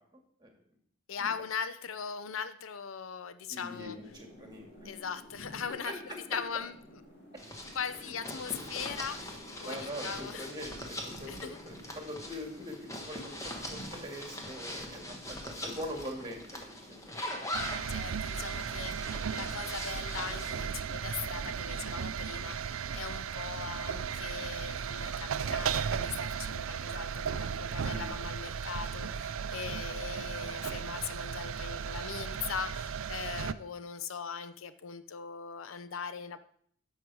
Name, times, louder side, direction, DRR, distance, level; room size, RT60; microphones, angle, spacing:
voice 1, 1.1-4.0 4.8-6.7 7.7-10.5 11.3-11.6 17.9-36.4, left 6 dB, 90° left, 12 dB, 0.6 m, -40 dB
voice 2, 3.5-4.9 5.8-5.9 8.5-8.7 9.6-17.3 27.8-28.1, equal, 20° right, 2 dB, 2.2 m, -43 dB
sound 1, 3.7-21.9, equal, 55° left, 2.1 m, -53 dB
sound 2, 7.4-20.7, left 1 dB, 15° left, 1.4 m, -42 dB
sound 3, 17.5-33.5, right 7 dB, 85° right, 0.5 m, -35 dB
11.5 x 6.6 x 4.8 m, 0.63 s
head